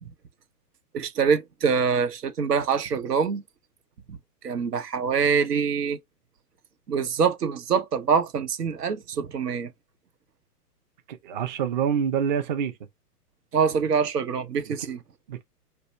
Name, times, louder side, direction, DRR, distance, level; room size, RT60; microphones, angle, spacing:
voice 1, 0.9-3.4 4.1-4.2 4.4-6.0 6.9-9.7 13.5-15.0, right 6 dB, 90° right, 0.9 m, -24 dB
voice 2, 11.1-12.8 14.7-14.8 15.3-15.4, right 8 dB, 30° right, 0.4 m, -26 dB
2.7 x 2.2 x 4.1 m
hypercardioid pair, 130°, 47 cm